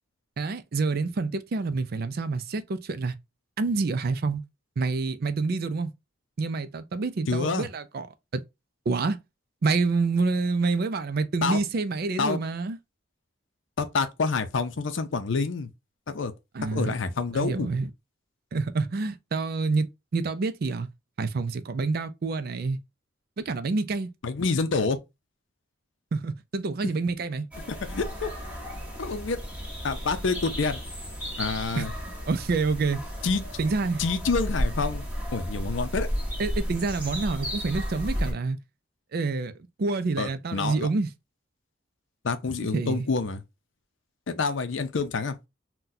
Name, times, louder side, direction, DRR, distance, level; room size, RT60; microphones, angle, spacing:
voice 1, 0.4-3.2 3.6-4.4 4.8-5.9 6.4-8.1 8.3-8.4 8.9-9.2 9.6-12.8 16.5-16.9 17.3-17.9 18.5-19.9 20.1-20.9 21.2-22.8 23.4-24.1 26.1-27.5 31.7-31.9 32.3-33.0 33.6-34.0 36.4-38.6 39.1-39.5 39.8-41.1 42.7-43.1, right 3 dB, 50° right, 0.4 m, -27 dB
voice 2, 7.3-7.7 11.4-11.6 12.2-12.4 13.8-15.7 16.1-16.3 16.7-17.7 24.2-25.0 26.8-26.9 27.7-28.3 29.0-29.4 29.8-30.8 31.4-31.9 33.2-33.4 34.0-35.0 35.3-36.1 40.2-40.9 42.2-43.4 44.3-45.4, left 4 dB, 70° left, 0.5 m, -27 dB
sound 1, 27.5-38.3, equal, 10° right, 1.1 m, -33 dB
3.9 x 2.2 x 2.6 m
head